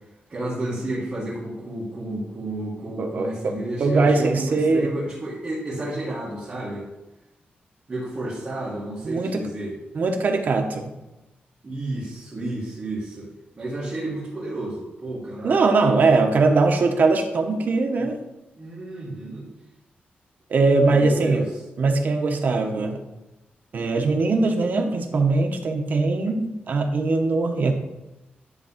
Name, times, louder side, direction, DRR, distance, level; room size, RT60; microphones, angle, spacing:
voice 1, 0.3-6.9 7.9-9.8 11.6-13.3 13.6-15.9 18.0-18.1 18.6-19.5 20.9-21.6, right 1 dB, 30° right, -7 dB, 2.0 m, -31 dB
voice 2, 3.0-3.5 3.8-4.9 9.0-9.4 9.9-10.8 15.4-18.2 20.5-21.4 21.8-23.0 23.7-27.7, right 3 dB, 55° right, 4 dB, 1.0 m, -21 dB
10.5 x 3.6 x 5.9 m, 1.0 s
wide cardioid pair, 155°, 4 cm